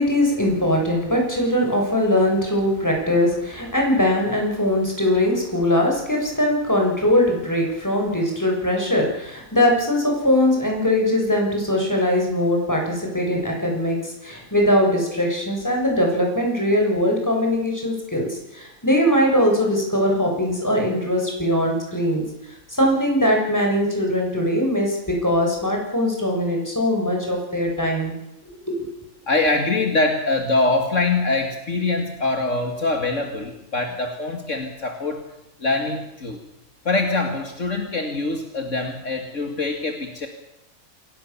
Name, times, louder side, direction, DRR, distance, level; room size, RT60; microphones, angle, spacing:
voice 1, 0.0-22.2 22.7-28.1 28.5-28.9, left 1 dB, 10° left, 0 dB, 6.9 m, -21 dB
voice 2, 29.3-35.2 35.6-36.4 36.9-40.3, left 3 dB, 60° left, 4 dB, 2.5 m, -23 dB
28.0 x 17.5 x 7.2 m, 0.89 s
omnidirectional pair, 1.5 m